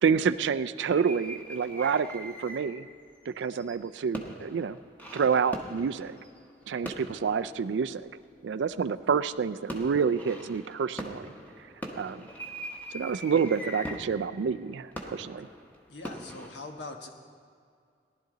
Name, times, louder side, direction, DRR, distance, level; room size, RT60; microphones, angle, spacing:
voice 1, 0.0-2.9 3.3-4.8 5.1-6.2 6.7-8.0 8.4-11.3 11.9-12.3 12.9-15.5, right 6 dB, 90° right, 12 dB, 0.4 m, -28 dB
sound 1, 0.8-2.9 3.3-8.2 8.9-9.3 9.7-16.5, equal, 10° left, 1.0 m, -42 dB
voice 2, 15.9-17.1, left 3 dB, 80° left, 3 dB, 1.3 m, -42 dB
18.5 x 11.5 x 3.9 m, 2.2 s
head